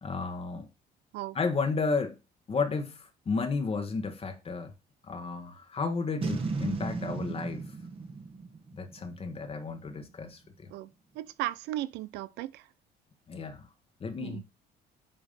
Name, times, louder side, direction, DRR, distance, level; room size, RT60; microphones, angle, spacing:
voice 1, 0.0-0.7 1.3-2.2 2.5-4.7 5.0-7.7 8.8-10.7 13.3-13.7 14.0-14.4, left 4 dB, 35° left, 1.2 m, -32 dB
Boom, 6.2-9.5, right 4 dB, 30° right, 1.4 m, -35 dB
voice 2, 10.7-12.7 14.2-14.4, right 15 dB, 90° right, 0.6 m, -36 dB
8.7 x 3.0 x 5.3 m
cardioid pair, 110°, 17 cm